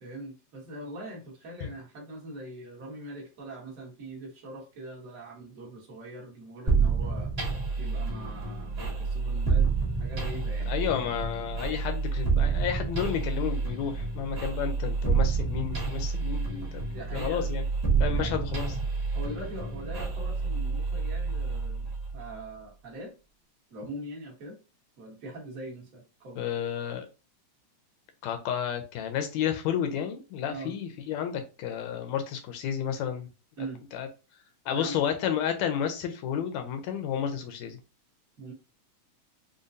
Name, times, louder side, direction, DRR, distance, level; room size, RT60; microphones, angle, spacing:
voice 1, 0.0-7.3 7.8-9.7 10.0-10.7 16.9-17.5 18.0-18.4 19.1-23.1 23.7-24.6 25.0-26.4 30.5-30.7 33.6-33.8 34.7-35.0 38.4-38.5, right 1 dB, 50° right, -2 dB, 1.0 m, -42 dB
sound 1, 6.7-22.3, right 5 dB, 80° right, 0.5 m, -29 dB
voice 2, 10.7-17.6 18.0-18.7 26.4-27.1 28.2-33.3 33.9-34.1 34.7-37.8, left 9 dB, 80° left, 6 dB, 1.8 m, -31 dB
5.0 x 2.2 x 2.6 m, 0.30 s
omnidirectional pair, 3.3 m